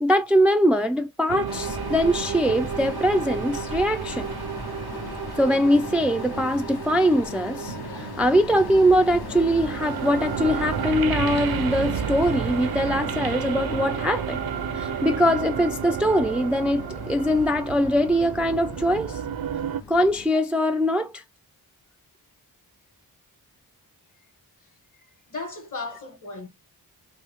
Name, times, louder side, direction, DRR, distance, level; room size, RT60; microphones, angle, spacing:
voice 1, 0.0-4.3 5.4-14.4 14.7-19.2 19.9-21.2, equal, 5° right, 0.3 m, -22 dB
sound 1, 1.3-19.8, right 8 dB, 65° right, 0.5 m, -31 dB
sound 2, 1.5-20.3, left 4 dB, 70° left, 1.0 m, -39 dB
voice 2, 25.3-26.5, left 3 dB, 50° left, 1.2 m, -35 dB
3.1 x 2.6 x 3.3 m
cardioid pair, 60°, 40 cm